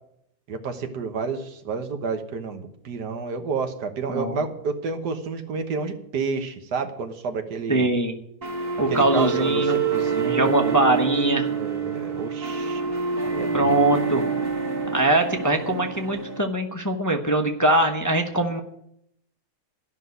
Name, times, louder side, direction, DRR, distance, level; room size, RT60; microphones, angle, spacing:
voice 1, 0.5-7.9 8.9-11.0 11.5-12.9 13.2-13.9, right 4 dB, 90° right, 7 dB, 1.8 m, -30 dB
voice 2, 4.1-4.4 7.7-8.1 8.8-9.8 10.3-11.5 13.5-14.2 14.9-18.6, right 1 dB, 15° left, 2 dB, 0.8 m, -22 dB
sound 1, 8.4-16.4, right 5 dB, 35° right, 1.7 m, -26 dB
13.0 x 6.0 x 9.3 m, 0.76 s
omnidirectional pair, 1.7 m